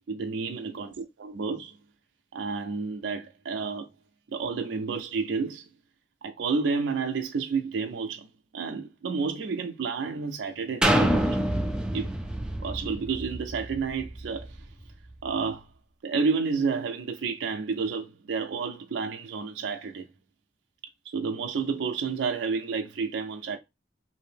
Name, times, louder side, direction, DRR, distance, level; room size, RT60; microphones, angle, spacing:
voice 1, 0.1-1.7 2.3-3.9 4.3-5.7 6.2-8.3 8.5-11.4 11.9-12.1 12.6-14.6 15.2-15.6 16.0-20.1 21.1-23.6, right 5 dB, 70° right, 0.4 m, -30 dB
sound 1, 10.8-14.6 15.1-15.2, right 1 dB, 5° right, 0.3 m, -27 dB
2.7 x 2.6 x 3.3 m
head